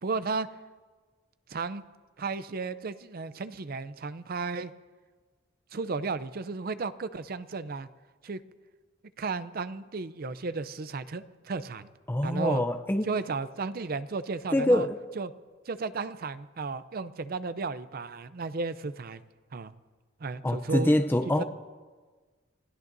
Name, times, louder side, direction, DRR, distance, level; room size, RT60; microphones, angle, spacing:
voice 1, 0.0-0.5 1.5-1.8 2.2-4.7 5.7-7.9 8.2-8.4 9.2-11.9 12.2-12.6 13.0-14.9 15.2-15.3 15.7-19.2 19.5-19.7 20.2-20.9 21.4-21.5, right 4 dB, 50° right, 13 dB, 0.5 m, -34 dB
voice 2, 12.1-13.1 14.5-15.0 20.4-21.4, left 1 dB, 10° left, 8 dB, 0.6 m, -25 dB
26.5 x 16.0 x 2.7 m, 1.4 s
head